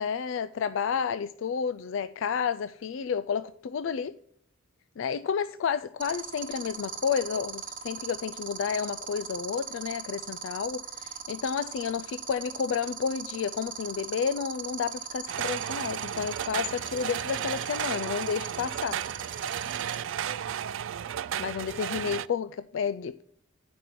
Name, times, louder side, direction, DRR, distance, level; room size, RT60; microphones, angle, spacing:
voice 1, 0.0-4.2 5.0-19.0 21.4-23.2, left 6 dB, 65° left, 12 dB, 0.3 m, -31 dB
sound 1, 6.0-19.9, right 7 dB, 40° right, 1.3 m, -38 dB
sound 2, 15.3-22.3, right 9 dB, 65° right, 0.3 m, -34 dB
11.0 x 5.2 x 5.9 m, 0.69 s
head